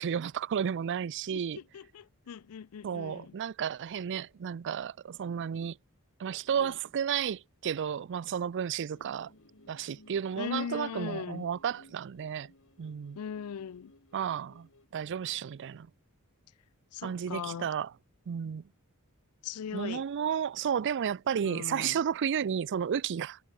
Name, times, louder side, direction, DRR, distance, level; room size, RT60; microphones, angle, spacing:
voice 1, 0.0-1.6 2.8-5.8 6.2-9.3 9.7-12.5 12.8-13.2 14.1-15.9 17.0-17.9 18.3-18.6 19.7-23.4, right 8 dB, 55° right, 0.4 m, -32 dB
voice 2, 1.3-3.3 6.6-6.8 10.4-11.5 13.1-13.9 16.9-17.7 19.4-20.1 21.4-22.0, left 7 dB, 80° left, 0.4 m, -39 dB
sound 1, 8.9-14.9, left 1 dB, 60° left, 3.7 m, -60 dB
head